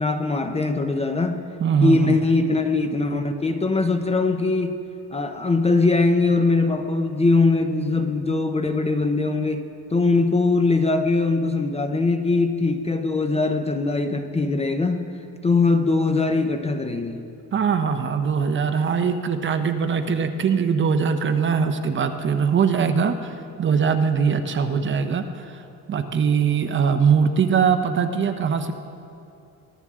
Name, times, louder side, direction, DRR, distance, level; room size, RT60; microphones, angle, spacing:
voice 1, 0.0-1.4 1.8-4.8 5.1-9.7 9.9-15.1 15.4-17.2, left 3 dB, 20° left, 7 dB, 0.6 m, -21 dB
voice 2, 1.6-2.2 17.5-25.6 25.9-28.7, right 6 dB, 35° right, 8 dB, 0.8 m, -21 dB
23.0 x 14.0 x 3.7 m, 2.7 s
cardioid pair, 135°, 35 cm